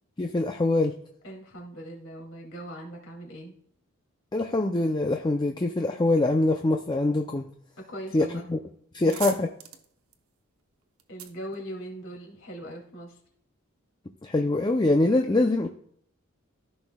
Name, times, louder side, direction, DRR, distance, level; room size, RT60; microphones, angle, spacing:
voice 1, 0.2-0.9 4.3-7.5 8.1-8.6 8.9-9.5 14.2-15.7, left 2 dB, 20° left, 4 dB, 0.4 m, -24 dB
voice 2, 1.2-3.6 7.8-8.5 11.1-13.2, right 1 dB, 60° left, 0 dB, 2.5 m, -40 dB
sound 1, 8.3-8.5 8.8-12.4, right 9 dB, 75° right, 0.9 m, -42 dB
14.5 x 6.3 x 2.3 m, 0.65 s
head